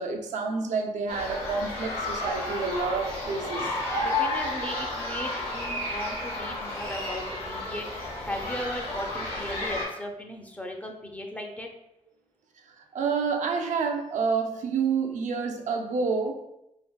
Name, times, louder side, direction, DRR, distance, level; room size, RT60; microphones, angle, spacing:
voice 1, 0.0-3.7 12.7-16.3, right 5 dB, 80° right, 3 dB, 0.4 m, -28 dB
sound 1, 1.1-9.9, left 2 dB, 70° left, 1.5 m, -32 dB
voice 2, 4.0-11.7, left 1 dB, 10° left, 2 dB, 0.4 m, -37 dB
3.5 x 2.5 x 2.2 m, 0.85 s
wide cardioid pair, 115°, 12 cm